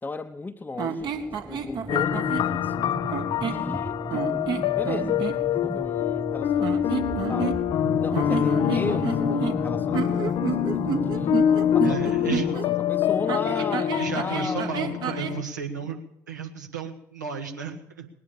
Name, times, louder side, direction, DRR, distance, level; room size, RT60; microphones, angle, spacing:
voice 1, 0.0-2.9 3.4-7.6 8.0-11.4 11.7-14.8 15.7-15.9, left 3 dB, 20° left, 4 dB, 0.9 m, -36 dB
sound 1, 0.8-2.5 3.1-3.7 4.1-5.4 6.6-7.8 8.1-12.7 13.3-15.4, right 7 dB, 50° right, 1.4 m, -30 dB
sound 2, 1.0-12.6, right 3 dB, 10° right, 0.5 m, -37 dB
sound 3, 1.9-15.4, left 10 dB, 50° left, 0.6 m, -25 dB
voice 2, 11.8-12.5 13.5-13.6 14.0-16.0 16.3-18.1, right 6 dB, 80° right, 3 dB, 1.7 m, -34 dB
20.0 x 9.6 x 7.1 m, 0.75 s
figure-of-eight pair, 50°, 10 cm